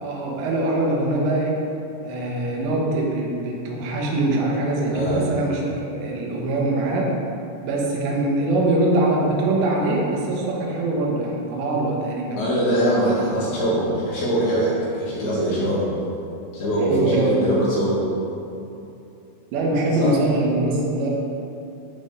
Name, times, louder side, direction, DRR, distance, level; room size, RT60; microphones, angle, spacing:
voice 1, 0.0-1.6 2.0-7.1 7.6-12.4 16.8-17.6 19.5-21.1, right 2 dB, 80° right, -2 dB, 3.8 m, -23 dB
voice 2, 4.9-5.2 12.4-15.8 16.5-18.0 19.9-20.2, right 1 dB, 60° left, -7 dB, 3.4 m, -22 dB
15.5 x 5.8 x 3.9 m, 2.8 s
omnidirectional pair, 5.9 m